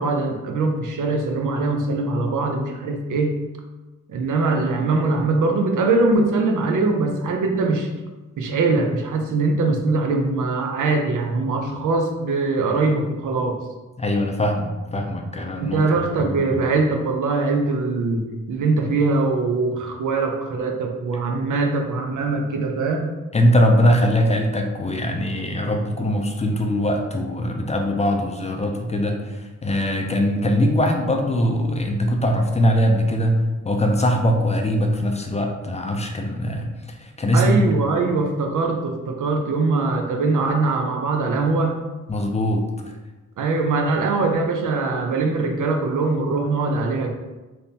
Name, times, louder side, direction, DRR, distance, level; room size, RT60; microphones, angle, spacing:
voice 1, 0.0-3.4 4.1-7.9 8.4-13.6 15.6-23.1 37.3-41.8 43.4-47.1, right 3 dB, 80° right, 3 dB, 0.6 m, -22 dB
voice 2, 14.0-15.8 16.2-16.7 21.3-21.4 23.3-37.6 42.1-42.7, equal, 20° left, 2 dB, 0.4 m, -21 dB
3.5 x 2.7 x 2.7 m, 1.2 s
wide cardioid pair, 95°, 30 cm